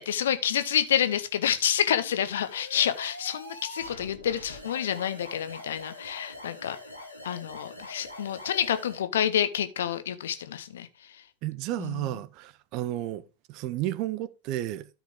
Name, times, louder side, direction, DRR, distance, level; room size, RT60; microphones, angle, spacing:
voice 1, 0.0-6.8 7.2-10.9 11.8-12.1, left 9 dB, 60° left, 0.9 m, -28 dB
sound 1, 1.9-9.0, left 2 dB, 85° left, 2.3 m, -44 dB
voice 2, 11.4-13.2 13.5-14.9, right 14 dB, 40° right, 0.6 m, -32 dB
13.0 x 5.1 x 3.6 m
figure-of-eight pair, 90°, 0 cm